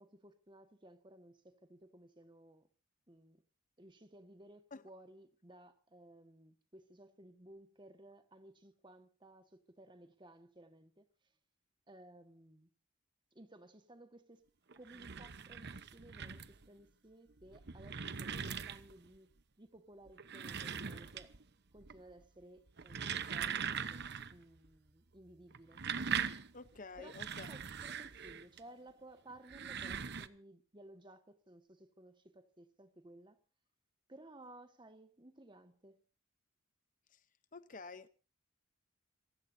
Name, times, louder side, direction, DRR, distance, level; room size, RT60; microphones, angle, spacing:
voice 1, 0.0-2.7 3.1-3.4 3.8-11.1 11.9-12.7 13.3-14.4 14.7-19.3 19.6-21.3 21.7-25.8 27.0-27.2 27.5-33.4 34.1-36.0, right 1 dB, 20° right, 1.6 m, -58 dB
sound 1, 14.7-16.7 17.4-19.1 20.1-21.5 21.8-22.2 22.7-24.4 24.6-24.7 25.5-28.6 29.4-30.3, right 7 dB, 50° right, 0.9 m, -41 dB
voice 2, 26.5-27.5 37.1-37.2 37.5-38.1, left 3 dB, 40° left, 0.8 m, -50 dB
27.5 x 15.5 x 2.7 m
head